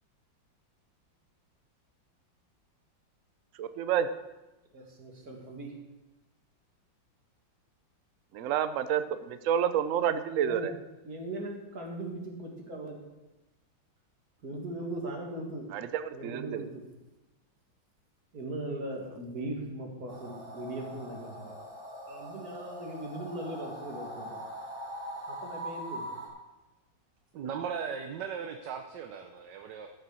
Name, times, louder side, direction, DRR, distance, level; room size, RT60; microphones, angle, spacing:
voice 1, 3.6-4.1 8.3-10.7 15.7-16.6, right 9 dB, 90° right, 11 dB, 0.6 m, -29 dB
voice 2, 4.7-5.7 10.4-10.7 11.0-13.0 14.4-15.7 16.1-16.8 18.3-21.5 22.1-24.4 25.3-26.1, right 1 dB, 50° right, 0 dB, 2.5 m, -39 dB
sound 1, 20.1-26.3, right 1 dB, 30° right, 2.7 m, -42 dB
voice 3, 27.3-29.9, right 7 dB, 65° right, 5 dB, 1.3 m, -37 dB
13.0 x 6.8 x 6.3 m, 1.0 s
omnidirectional pair, 2.2 m